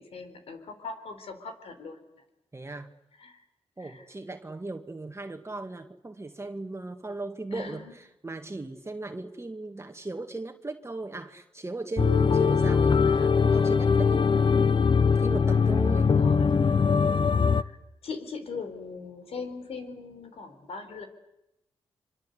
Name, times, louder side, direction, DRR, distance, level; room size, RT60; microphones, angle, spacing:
voice 1, 0.0-2.0 3.2-3.4 3.8-4.0 7.5-7.9 14.0-14.9 16.0-16.6 17.5-17.8 18.0-21.1, left 4 dB, 75° left, 8 dB, 4.3 m, -40 dB
voice 2, 2.5-2.9 3.8-14.2 15.1-16.1, right 2 dB, 25° right, 5 dB, 2.0 m, -37 dB
sound 1, 12.0-17.6, left 5 dB, 50° left, 1.0 m, -22 dB
25.5 x 25.0 x 8.2 m, 0.88 s
supercardioid pair, 50°, 10 cm